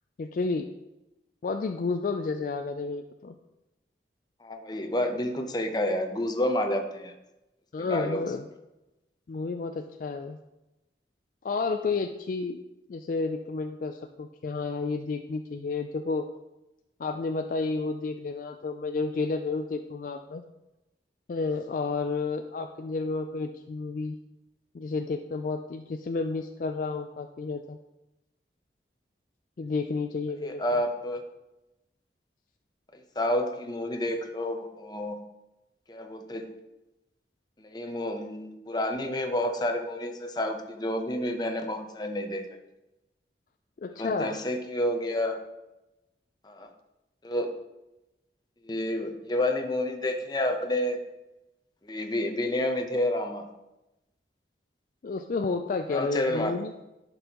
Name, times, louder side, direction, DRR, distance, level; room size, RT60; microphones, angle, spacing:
voice 1, 0.2-0.7 1.4-3.3 7.7-8.5 9.3-10.4 11.4-12.6 12.9-16.3 17.0-20.4 21.3-24.2 24.7-27.8 29.6-30.6 43.8-44.4 55.0-56.7, left 4 dB, 50° left, 7 dB, 0.3 m, -31 dB
voice 2, 4.4-7.1 7.8-8.2 30.4-31.2 33.2-35.2 35.9-36.5 37.6-42.4 44.0-45.4 46.4-46.7 47.2-47.5 48.6-51.0 51.8-53.5 55.9-56.6, left 1 dB, 25° left, 5 dB, 0.7 m, -29 dB
11.0 x 5.3 x 2.9 m, 0.96 s
head